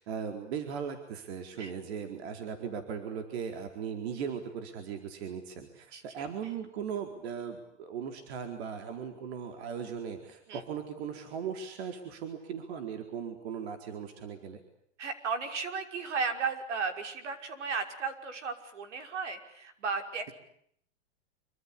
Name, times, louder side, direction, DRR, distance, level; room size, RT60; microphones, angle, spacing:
voice 1, 0.0-14.6, right 7 dB, 60° right, 6 dB, 4.4 m, -38 dB
voice 2, 5.9-6.3 10.5-10.6 15.0-20.3, right 5 dB, 80° right, 7 dB, 5.8 m, -35 dB
27.0 x 25.0 x 8.6 m, 0.68 s
supercardioid pair, 150°, 35 cm